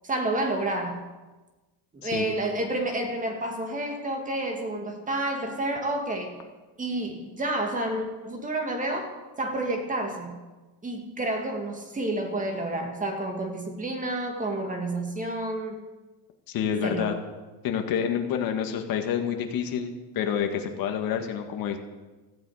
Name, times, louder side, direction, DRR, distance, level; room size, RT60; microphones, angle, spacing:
voice 1, 0.0-1.1 1.9-6.4 6.8-9.1 9.4-10.4 10.8-15.8 16.8-17.2, right 1 dB, 15° right, 3 dB, 2.2 m, -30 dB
voice 2, 16.5-17.1 17.6-21.8, left 8 dB, 45° left, 5 dB, 2.0 m, -28 dB
17.0 x 15.5 x 5.0 m, 1.2 s
cardioid pair, 150°, 47 cm